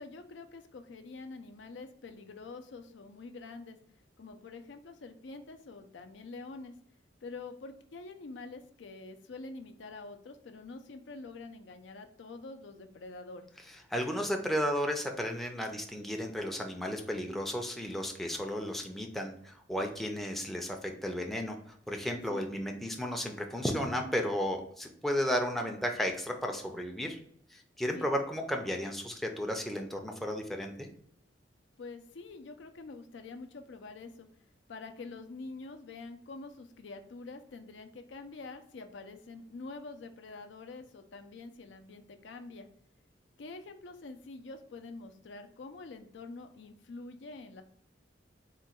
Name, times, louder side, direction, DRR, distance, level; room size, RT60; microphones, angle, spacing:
voice 1, 0.0-3.8 4.2-6.8 7.2-13.5 22.3-22.5 28.0-28.1 31.8-34.3 34.7-42.7 43.4-47.6, left 3 dB, 80° left, 7 dB, 0.5 m, -46 dB
voice 2, 13.9-27.2 27.5-30.9, equal, ahead, 2 dB, 0.4 m, -34 dB
3.7 x 2.2 x 4.3 m, 0.67 s
head